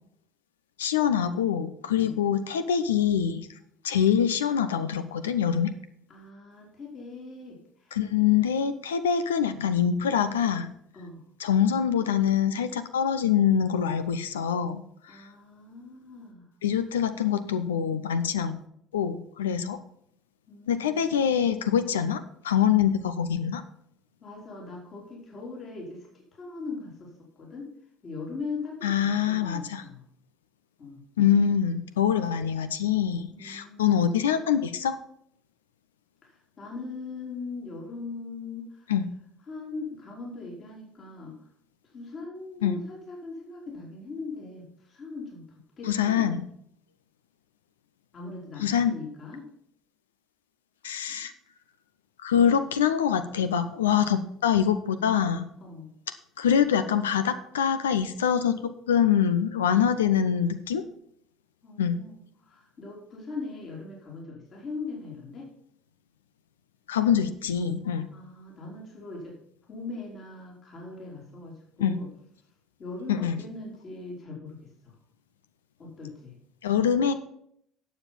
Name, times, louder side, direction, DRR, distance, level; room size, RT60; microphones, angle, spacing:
voice 1, 0.8-3.5 3.8-5.7 7.9-10.7 11.4-15.3 16.6-18.5 18.9-19.8 20.7-23.6 28.8-29.8 31.2-35.0 38.9-39.1 42.6-42.8 45.9-46.4 48.6-48.9 50.8-51.3 52.2-55.5 56.4-60.8 61.8-62.0 66.9-68.1 71.8-72.0 73.1-73.4 76.6-77.1, left 8 dB, 75° left, 11 dB, 0.6 m, -24 dB
voice 2, 6.1-8.0 10.9-11.2 15.1-16.5 20.5-21.1 24.2-27.7 28.0-30.0 30.8-31.0 33.3-33.9 36.2-38.9 39.5-41.4 41.9-45.4 45.8-46.3 48.1-49.5 55.6-55.9 61.6-62.2 62.4-65.5 68.1-69.4 69.7-72.1 72.8-74.9 75.8-76.3, left 3 dB, 40° left, -2 dB, 3.6 m, -40 dB
9.6 x 7.2 x 5.5 m, 0.69 s
figure-of-eight pair, 60°, 0 cm